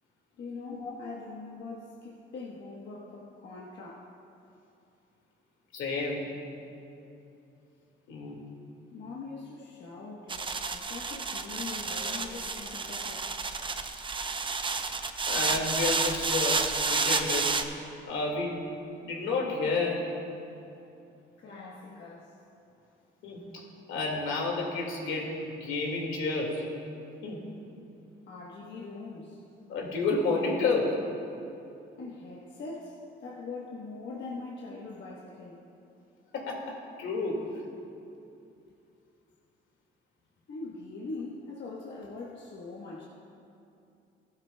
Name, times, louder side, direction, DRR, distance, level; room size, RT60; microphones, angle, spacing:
voice 1, 0.4-4.1 8.9-13.4 21.4-22.4 28.3-29.4 32.0-35.7 40.5-43.1, left 3 dB, 65° left, -3 dB, 1.2 m, -42 dB
voice 2, 5.7-6.3 8.1-8.4 15.3-17.5 18.1-18.6 19.0-20.0 23.2-26.7 27.2-27.4 29.7-31.0 36.3-37.5, left 3 dB, 85° left, -1 dB, 2.0 m, -30 dB
sound 1, 10.3-17.6, right 4 dB, 25° right, 0.6 m, -30 dB
15.5 x 12.0 x 2.2 m, 2.7 s
cardioid pair, 90°, 20 cm